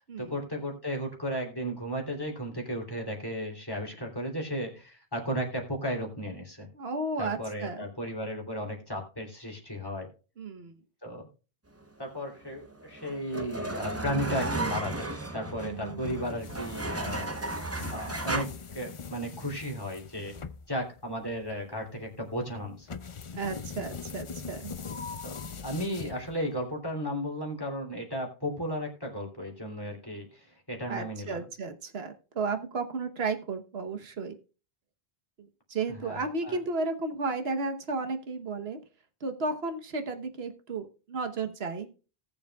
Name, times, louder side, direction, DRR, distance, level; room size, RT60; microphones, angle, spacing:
voice 1, 0.2-6.7 7.2-10.1 11.0-11.2 12.0-17.3 17.9-18.5 18.7-20.3 20.7-22.9 25.2-31.4 35.9-36.6, equal, 20° left, -1 dB, 3.0 m, -34 dB
voice 2, 6.7-7.9 10.4-10.8 15.6-16.3 23.3-24.7 30.9-34.4 35.4-38.8 39.2-41.9, right 3 dB, 80° right, 7 dB, 1.4 m, -33 dB
sound 1, 12.6-18.4, right 2 dB, 15° right, 0.7 m, -34 dB
sound 2, 16.0-26.6, left 5 dB, 40° left, 0.5 m, -42 dB
18.5 x 7.1 x 2.3 m, 0.34 s
omnidirectional pair, 1.0 m